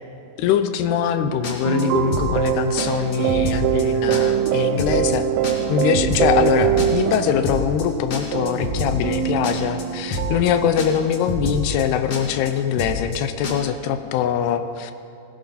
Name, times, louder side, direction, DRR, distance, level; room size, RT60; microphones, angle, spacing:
voice 1, 0.4-5.3 5.7-14.9, left 9 dB, 80° left, 9 dB, 2.7 m, -22 dB
sound 1, 1.4-1.8 2.1-2.5 2.8-2.9 3.1-3.8 4.1-4.5 4.8-5.2 5.4-7.2 7.4-7.8 8.1-9.2 9.4-9.8 10.1-10.5 10.8-10.9 11.1-11.8 12.1-12.5 12.8-13.2 13.4-13.5, left 1 dB, 55° left, 1.9 m, -27 dB
sound 2, 1.6-10.7, right 10 dB, 85° right, 2.6 m, -23 dB
18.5 x 15.5 x 4.1 m, 2.5 s
omnidirectional pair, 4.7 m